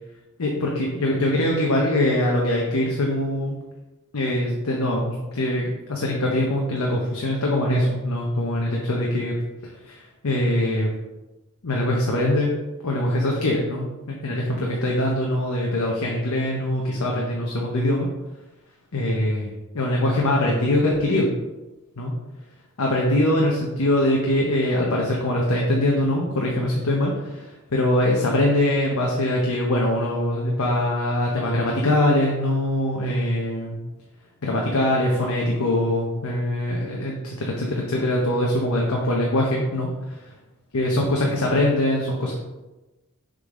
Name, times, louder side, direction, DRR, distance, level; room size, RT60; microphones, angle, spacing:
voice 1, 0.4-3.5 4.1-9.3 9.9-10.9 11.6-12.5 12.8-18.1 18.9-21.3 22.0-22.1 22.8-33.8 34.4-40.2 40.7-42.3, left 1 dB, 75° left, -1 dB, 0.9 m, -23 dB
6.5 x 3.9 x 3.7 m, 1.1 s
head